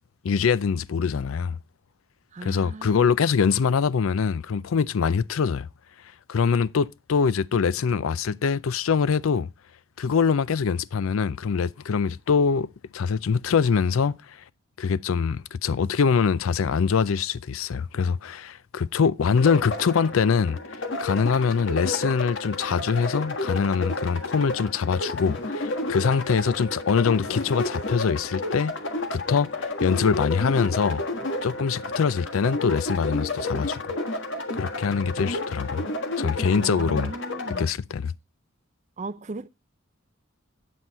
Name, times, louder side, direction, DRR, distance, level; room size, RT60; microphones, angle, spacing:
voice 1, 0.2-1.6 2.4-5.7 6.3-9.5 10.0-14.4 14.8-20.6 21.0-28.7 29.1-31.0 31.4-33.8 34.5-35.8 36.2-37.1 37.6-38.1, left 6 dB, 80° left, 0.4 m, -24 dB
voice 2, 2.3-3.1 36.6-37.6 39.0-39.5, right 3 dB, 35° right, 0.5 m, -37 dB
sound 1, 19.4-37.7, left 2 dB, 60° left, 1.6 m, -31 dB
9.3 x 8.1 x 4.1 m
head